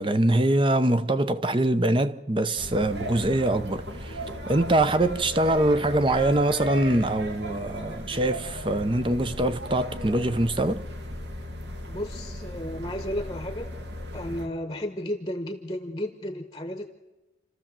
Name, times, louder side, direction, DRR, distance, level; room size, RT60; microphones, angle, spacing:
voice 1, 0.0-10.8, right 1 dB, 25° right, 0.7 m, -24 dB
sound 1, 2.6-14.5, left 1 dB, 70° right, 2.1 m, -36 dB
voice 2, 11.8-13.7 14.1-16.9, left 1 dB, 20° left, 1.0 m, -33 dB
28.0 x 13.5 x 7.6 m
head